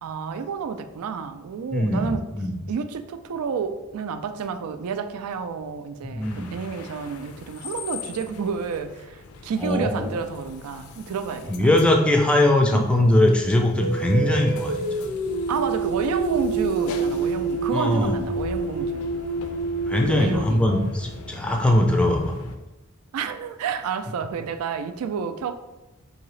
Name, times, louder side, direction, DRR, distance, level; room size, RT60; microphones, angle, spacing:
voice 1, 0.0-2.3 2.7-11.7 12.7-12.9 15.5-19.1 20.1-20.7 23.1-25.5, right 6 dB, 90° right, 0.3 m, -30 dB
voice 2, 1.7-2.5 6.0-6.5 9.6-10.1 11.5-15.1 17.7-18.2 19.9-22.3, left 1 dB, 5° left, 0.4 m, -21 dB
sound 1, 6.2-22.6, left 4 dB, 75° left, 0.4 m, -41 dB
sound 2, 13.8-21.1, right 3 dB, 65° right, 0.7 m, -28 dB
4.7 x 2.7 x 3.1 m
head